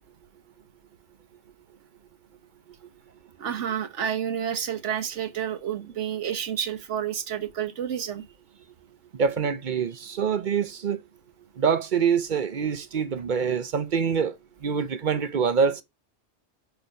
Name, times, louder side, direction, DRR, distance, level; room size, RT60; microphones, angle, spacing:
voice 1, 3.4-8.2, right 9 dB, 85° right, 1.3 m, -30 dB
voice 2, 9.1-11.0 11.6-14.3 14.6-15.8, right 6 dB, 50° right, 0.7 m, -25 dB
6.8 x 5.2 x 5.1 m
omnidirectional pair, 1.2 m